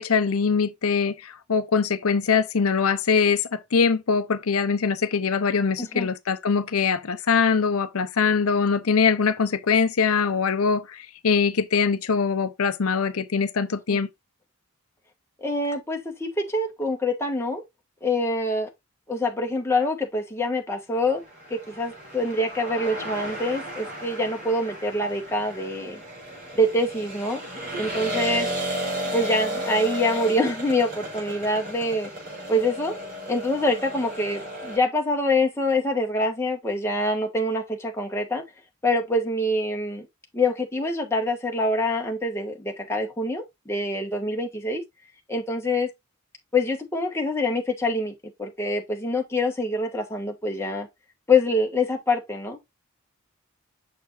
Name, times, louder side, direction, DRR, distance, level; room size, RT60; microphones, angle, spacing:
voice 1, 0.0-14.1, left 5 dB, 80° left, 0.7 m, -23 dB
voice 2, 5.8-6.1 13.9-14.0 15.4-17.6 18.0-18.7 19.1-21.2 21.5-26.0 26.5-27.4 27.8-28.5 29.1-32.1 32.5-32.9 33.3-38.4 38.8-40.1 40.3-44.8 45.3-45.9 46.5-48.1 48.4-50.9 51.3-52.6, left 1 dB, 10° left, 1.6 m, -25 dB
sound 1, 21.3-34.8, equal, 40° right, 5.5 m, -34 dB
6.7 x 6.5 x 2.6 m
head